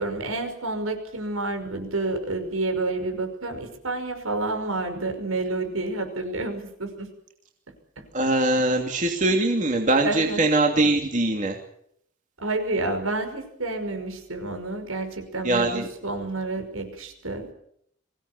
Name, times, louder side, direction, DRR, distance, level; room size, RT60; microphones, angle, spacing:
voice 1, 0.0-7.1 8.0-8.1 10.0-10.5 12.4-17.5, right 2 dB, 85° right, 6 dB, 5.6 m, -29 dB
voice 2, 8.1-11.6 15.4-15.9, right 2 dB, 35° right, 2 dB, 2.7 m, -22 dB
23.5 x 17.0 x 8.4 m, 0.70 s
head